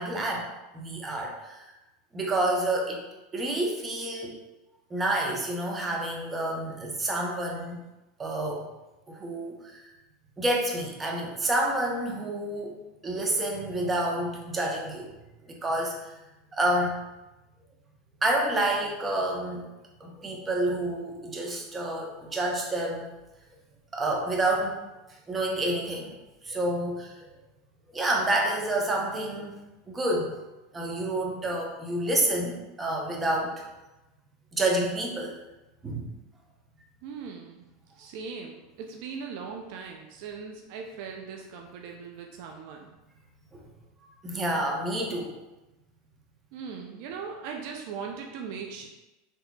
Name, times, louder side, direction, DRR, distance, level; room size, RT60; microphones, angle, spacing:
voice 1, 0.0-1.6 2.1-3.0 3.3-4.4 4.9-7.8 8.2-8.7 9.1-9.8 10.4-15.1 15.4-16.1 16.5-17.0 18.2-19.7 20.0-23.1 23.9-24.8 25.3-26.1 26.4-27.3 27.9-29.5 29.9-30.4 30.7-33.7 34.5-35.4 35.8-36.1 43.5-43.6 44.2-45.4, right 1 dB, 20° right, 0 dB, 0.7 m, -29 dB
voice 2, 37.0-37.7 38.0-42.9 46.5-48.9, right 5 dB, 65° right, 2 dB, 0.3 m, -39 dB
3.9 x 2.6 x 2.2 m, 1.0 s
hypercardioid pair, 105°, 0 cm